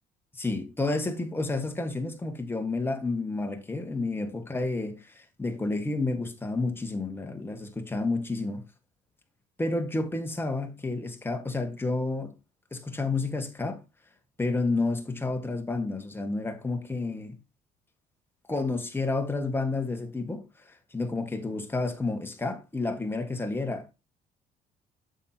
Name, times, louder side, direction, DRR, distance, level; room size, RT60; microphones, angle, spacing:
voice 1, 0.3-8.6 9.6-12.3 12.7-13.8 14.4-17.4 18.5-23.9, left 3 dB, 15° left, 1.7 m, -30 dB
9.0 x 7.5 x 2.9 m
cardioid pair, 110°, 17 cm